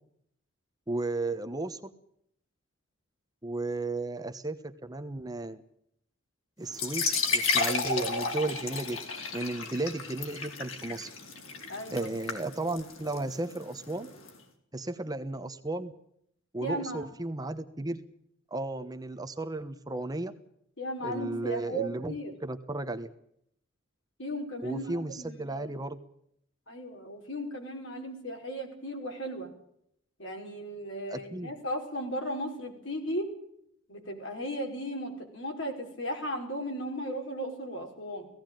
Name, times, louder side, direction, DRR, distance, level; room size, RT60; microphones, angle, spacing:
voice 1, 0.9-1.9 3.4-5.6 6.6-9.0 9.3-11.1 11.9-14.1 14.7-15.9 16.5-18.0 18.5-20.3 21.0-22.2 22.4-23.1 24.6-26.0 31.1-31.5, right 2 dB, 20° right, 9 dB, 1.0 m, -34 dB
sound 1, 6.7-14.3, left 4 dB, 90° left, 3.8 m, -33 dB
voice 2, 11.7-12.1 16.6-17.1 20.8-22.3 24.2-25.7 26.7-29.5 30.2-33.3 33.9-38.3, equal, 70° left, 2 dB, 5.1 m, -36 dB
17.0 x 16.5 x 9.1 m, 0.71 s
head